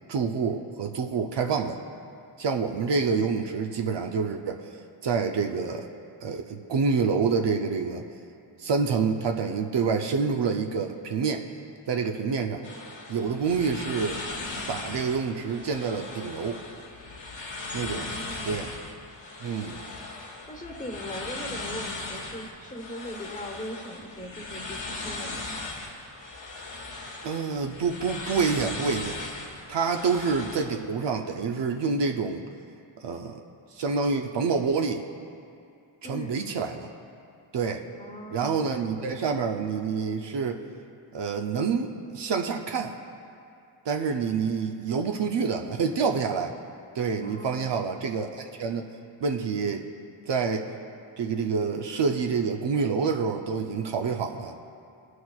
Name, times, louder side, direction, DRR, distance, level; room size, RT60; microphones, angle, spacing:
voice 1, 0.1-1.8 2.4-4.6 5.0-5.9 6.2-8.1 8.6-11.5 11.9-12.6 13.1-14.2 14.7-16.6 17.7-18.1 18.4-18.7 19.4-19.8 27.2-29.2 29.7-32.5 33.0-33.4 33.7-35.1 36.0-36.9 37.5-37.8 38.3-40.6 41.1-43.0 43.9-46.5 46.9-48.8 49.2-49.9 50.3-50.7 51.2-54.5, right 5 dB, 60° right, 3 dB, 0.7 m, -27 dB
sound 1, 12.6-30.6, left 3 dB, 60° left, 1.5 m, -38 dB
voice 2, 17.9-18.7 20.5-25.7 36.0-36.4 37.9-38.8 47.2-47.8, equal, 15° left, 2 dB, 1.3 m, -40 dB
18.0 x 6.4 x 2.4 m, 2.5 s
cardioid pair, 55°, 49 cm